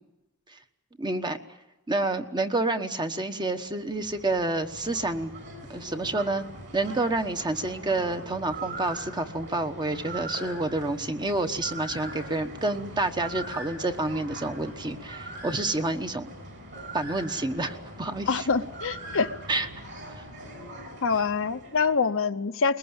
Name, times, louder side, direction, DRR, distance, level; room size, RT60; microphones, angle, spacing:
voice 1, 1.0-1.4 1.9-5.3 5.7-6.4 6.7-16.3 16.9-18.5 19.5-19.7, right 2 dB, 20° right, 7 dB, 1.2 m, -29 dB
sound 1, 3.7-22.1, right 2 dB, 55° right, 6.8 m, -41 dB
voice 2, 18.3-19.3 21.0-22.8, left 5 dB, 65° left, 9 dB, 0.8 m, -25 dB
21.0 x 20.5 x 8.9 m, 1.0 s
head